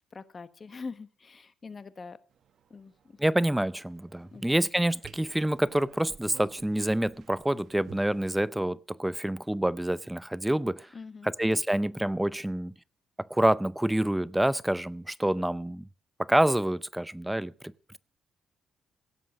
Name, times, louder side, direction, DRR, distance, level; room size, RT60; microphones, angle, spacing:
voice 1, 0.1-2.2 2.7-3.2 4.3-4.7 10.9-11.3, left 4 dB, 35° left, 1.2 m, -44 dB
sound 1, 2.3-8.4, right 8 dB, 60° right, 1.2 m, -54 dB
voice 2, 3.2-10.9 11.2-12.7 13.3-15.9 16.2-17.7, right 1 dB, 5° right, 0.5 m, -27 dB
17.0 x 7.5 x 6.4 m
cardioid pair, 90°, 0 cm